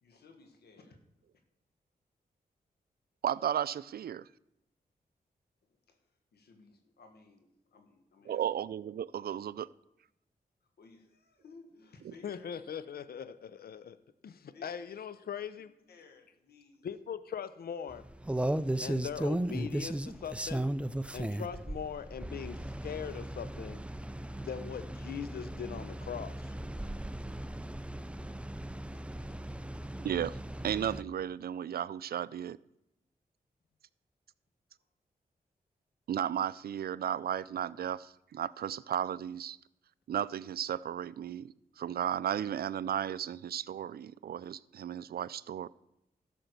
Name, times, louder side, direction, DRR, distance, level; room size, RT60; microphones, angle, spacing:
voice 1, 0.0-1.0 5.7-6.0 6.3-8.4 10.6-12.5 14.5-14.9 15.9-16.9, left 3 dB, 85° left, 6 dB, 1.6 m, -58 dB
voice 2, 3.2-4.3 8.3-9.7 12.1-12.2 30.0-30.4 30.6-32.6 36.1-39.6 40.1-45.7, right 9 dB, 70° right, 19 dB, 0.4 m, -34 dB
voice 3, 12.2-14.0 14.2-15.7 16.8-18.0 18.8-20.7 21.1-23.8 24.4-26.5, left 8 dB, 70° left, 14 dB, 0.6 m, -41 dB
sound 1, 17.9-31.0, right 1 dB, 5° right, 0.5 m, -37 dB
13.0 x 5.9 x 6.7 m, 0.84 s
cardioid pair, 60°, 16 cm